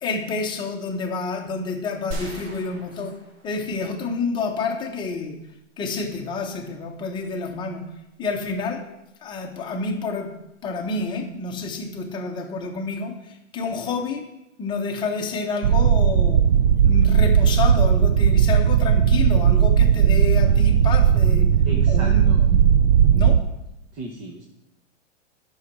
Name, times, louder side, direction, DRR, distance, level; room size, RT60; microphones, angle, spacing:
voice 1, 0.0-3.2 3.4-5.4 5.8-7.8 8.2-8.8 9.2-10.3 10.6-14.2 14.6-16.4 16.8-21.5 21.9-22.6 23.1-23.4, left 4 dB, 10° left, 2 dB, 1.0 m, -29 dB
sound 1, 2.1-4.0 4.4-4.5, right 1 dB, 60° right, 3.0 m, -37 dB
sound 2, 15.6-23.4, right 8 dB, 45° right, 0.4 m, -17 dB
voice 2, 21.6-22.4 23.9-24.4, right 2 dB, 20° right, 1 dB, 0.8 m, -35 dB
10.5 x 6.4 x 6.0 m, 0.89 s
hypercardioid pair, 160°, 37 cm